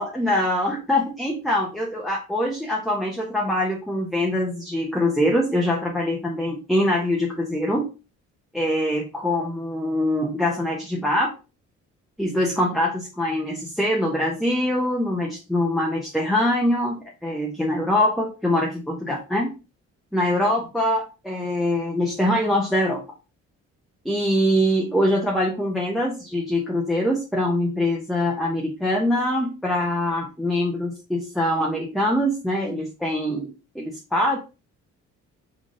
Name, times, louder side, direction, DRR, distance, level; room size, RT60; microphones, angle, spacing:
voice 1, 0.0-7.9 8.5-11.3 12.2-19.5 20.1-23.0 24.0-34.4, left 1 dB, ahead, -1 dB, 1.0 m, -23 dB
3.6 x 3.6 x 3.8 m, 0.30 s
cardioid pair, 90°, 30 cm